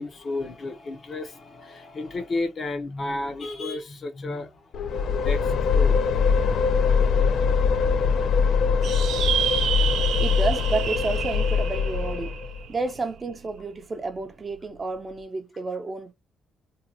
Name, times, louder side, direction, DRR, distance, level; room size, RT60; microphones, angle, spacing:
voice 1, 0.0-4.7 5.1-6.3 6.6-6.7, left 2 dB, 45° left, 0.7 m, -33 dB
sound 1, 4.7-12.6, left 5 dB, 65° left, 0.3 m, -22 dB
sound 2, 8.8-13.6, right 9 dB, 80° right, 0.5 m, -30 dB
voice 2, 10.2-12.3 12.7-16.1, right 3 dB, 30° right, 0.5 m, -30 dB
2.7 x 2.3 x 2.6 m
cardioid pair, 90°, 0 cm